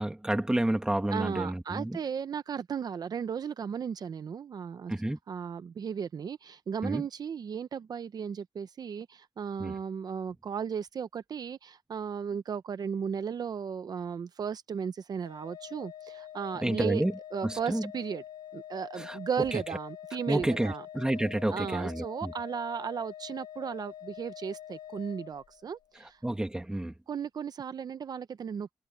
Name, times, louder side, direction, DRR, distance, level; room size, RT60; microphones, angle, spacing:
voice 1, 0.0-2.0 4.9-5.2 6.8-7.0 9.6-9.7 16.6-17.1 17.4-17.9 19.0-19.2 19.5-19.6 20.3-22.3 26.2-26.9, right 1 dB, 10° right, 1.8 m, -30 dB
voice 2, 1.1-4.9 5.3-17.0 17.3-18.2 18.5-20.9 21.5-26.2 27.1-28.9, right 7 dB, 60° right, 0.6 m, -35 dB
Organ, 15.2-25.9, left 11 dB, 75° left, 2.0 m, -46 dB
wide cardioid pair, 145°, 7 cm